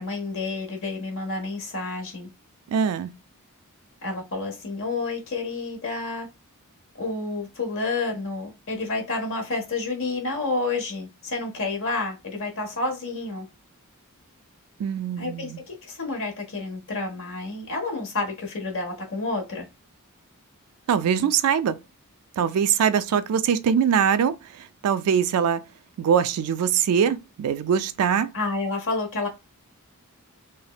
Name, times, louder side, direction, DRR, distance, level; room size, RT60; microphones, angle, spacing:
voice 1, 0.0-2.3 4.0-6.3 7.0-13.5 15.2-19.7 28.3-29.3, left 3 dB, 65° left, 1.0 m, -29 dB
voice 2, 2.7-3.1 14.8-15.6 20.9-21.8 22.4-25.6 26.0-28.3, right 7 dB, 80° right, 0.3 m, -22 dB
3.2 x 2.0 x 2.2 m
head